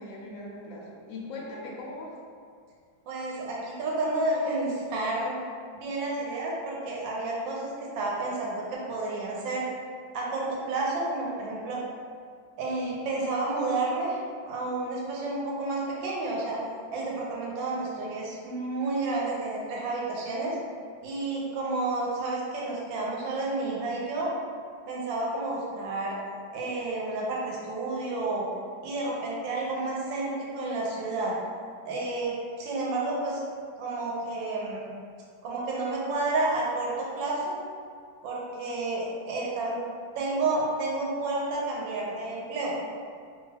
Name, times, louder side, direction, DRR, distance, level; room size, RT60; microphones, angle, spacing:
voice 1, 0.0-2.1, left 2 dB, 75° left, -3 dB, 0.7 m, -40 dB
voice 2, 3.1-5.4 5.7-9.6 10.1-11.8 12.6-14.2 14.4-16.6 16.9-20.6 21.0-24.3 24.9-26.2 26.5-28.5 28.8-31.3 31.8-33.4 33.8-34.9 35.4-37.5 38.2-39.8 40.1-42.7, right 2 dB, 75° right, -4 dB, 1.4 m, -30 dB
3.2 x 2.3 x 3.3 m, 2.1 s
omnidirectional pair, 2.1 m